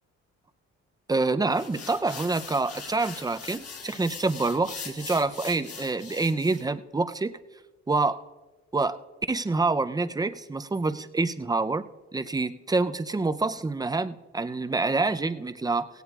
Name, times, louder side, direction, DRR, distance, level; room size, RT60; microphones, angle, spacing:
voice 1, 1.1-7.3 7.9-8.2 8.7-9.0 9.3-11.8 12.1-15.9, right 3 dB, 15° right, 11 dB, 0.5 m, -27 dB
sound 1, 1.5-6.7, left 5 dB, 50° left, 1.4 m, -41 dB
17.0 x 16.5 x 2.4 m, 1.2 s
cardioid pair, 90°, 30 cm